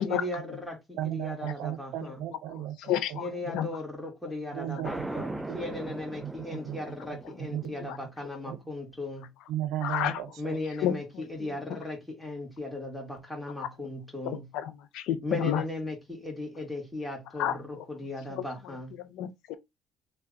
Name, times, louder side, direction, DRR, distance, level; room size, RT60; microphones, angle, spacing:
voice 1, 0.0-2.2 3.1-9.3 10.4-14.5 15.2-18.9, left 1 dB, 5° left, 1.7 m, -37 dB
voice 2, 1.0-3.2 3.5-3.6 4.5-7.9 8.5-8.6 9.5-10.6, right 12 dB, 75° right, 0.5 m, -36 dB
voice 3, 2.9-3.3 3.5-3.7 7.9-8.0 9.8-10.1 10.8-10.9 14.3-15.6 17.4-17.5 18.3-18.4 19.0-19.5, left 11 dB, 75° left, 0.6 m, -29 dB
sound 1, 4.8-7.7, right 2 dB, 10° right, 0.4 m, -39 dB
3.3 x 2.2 x 3.7 m
cardioid pair, 95°, 0 cm